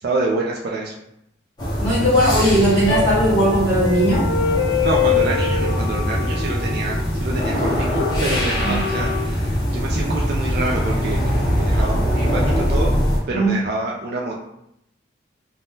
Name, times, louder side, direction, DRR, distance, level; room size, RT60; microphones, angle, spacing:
voice 1, 0.0-0.9 4.8-13.0 13.3-14.4, right 2 dB, 50° right, -3 dB, 0.3 m, -27 dB
sound 1, 1.6-13.2, equal, 20° left, 0.6 m, -22 dB
voice 2, 1.8-4.3 8.6-8.8 13.3-13.6, equal, 40° left, -13 dB, 1.2 m, -18 dB
sound 2, 2.9-7.2 7.9-9.2, left 7 dB, 75° left, 0.4 m, -25 dB
3.4 x 2.1 x 2.7 m, 0.77 s
head